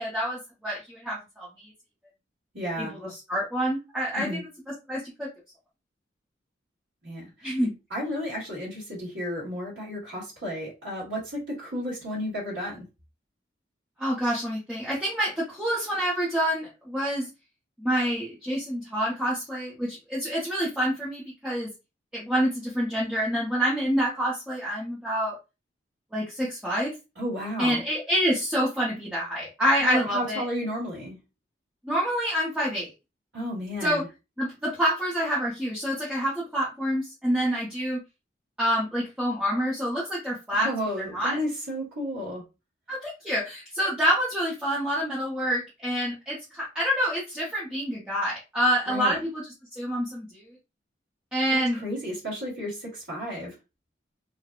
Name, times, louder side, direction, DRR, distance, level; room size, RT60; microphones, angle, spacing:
voice 1, 0.0-1.5 2.8-4.4 4.9-5.3 7.4-7.7 14.0-17.3 17.8-21.7 22.1-25.4 26.1-26.9 27.6-30.5 31.9-32.9 33.8-34.0 34.4-38.0 38.6-40.7 41.0-41.4 42.9-49.4 49.8-50.5 51.3-51.8, equal, 5° right, 0.8 m, -27 dB
voice 2, 2.5-2.9 4.1-4.4 7.0-7.3 7.9-12.8 27.2-27.8 29.8-31.2 33.3-34.1 40.5-42.4 48.9-49.2 51.5-53.5, equal, 80° right, 1.3 m, -32 dB
3.3 x 2.1 x 2.4 m
head